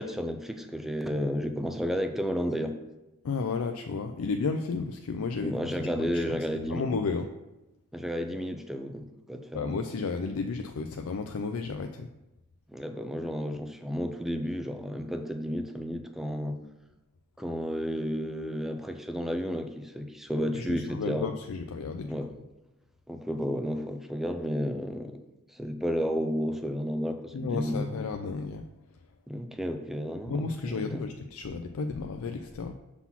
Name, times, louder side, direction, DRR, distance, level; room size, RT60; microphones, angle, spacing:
voice 1, 0.0-2.7 5.4-6.8 7.9-9.8 12.7-16.6 17.4-21.3 22.1-22.3 23.1-25.2 25.5-27.9 29.3-31.1, equal, ahead, 6 dB, 0.4 m, -32 dB
voice 2, 3.2-6.4 6.7-7.3 9.5-12.1 20.3-22.2 27.3-28.7 30.3-32.7, left 4 dB, 80° left, 6 dB, 0.4 m, -33 dB
5.9 x 4.0 x 5.6 m, 0.99 s
head